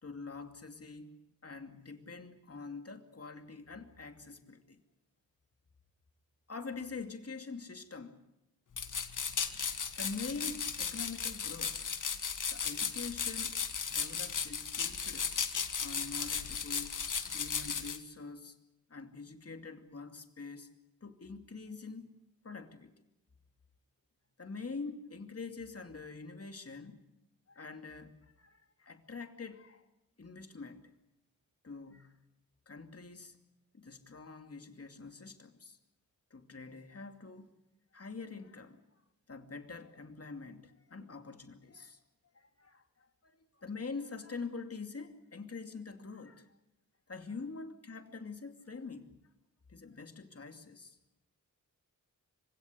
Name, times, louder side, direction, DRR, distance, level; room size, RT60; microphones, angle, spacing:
voice 1, 0.0-4.8 6.5-8.2 10.0-11.9 12.5-15.3 15.8-17.0 17.3-18.6 18.9-20.7 21.0-22.9 24.4-27.1 27.5-29.8 30.2-30.8 31.6-32.3 32.7-33.4 33.7-35.8 36.3-37.5 37.9-38.8 39.3-42.0 42.3-46.6 47.1-49.2 49.7-51.0, left 4 dB, 45° left, 2.6 m, -45 dB
sound 1, 8.7-18.0, left 6 dB, 60° left, 1.7 m, -36 dB
25.5 x 16.5 x 9.6 m
cardioid pair, 45°, 34 cm